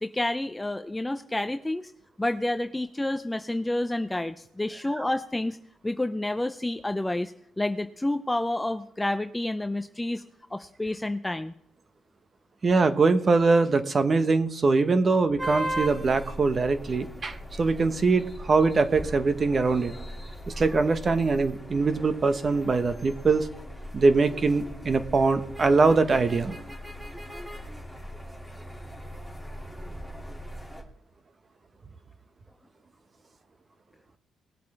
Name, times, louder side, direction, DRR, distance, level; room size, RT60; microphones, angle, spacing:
voice 1, 0.0-1.9 2.2-5.6 5.8-10.2 10.5-11.5, left 1 dB, 10° left, 9 dB, 0.5 m, -29 dB
voice 2, 12.6-19.9 20.6-23.5 23.9-26.6, right 4 dB, 35° right, 9 dB, 1.2 m, -23 dB
sound 1, 15.4-30.8, equal, 5° right, 2.4 m, -39 dB
20.0 x 8.0 x 3.4 m, 0.74 s
cardioid pair, 90°, 0 cm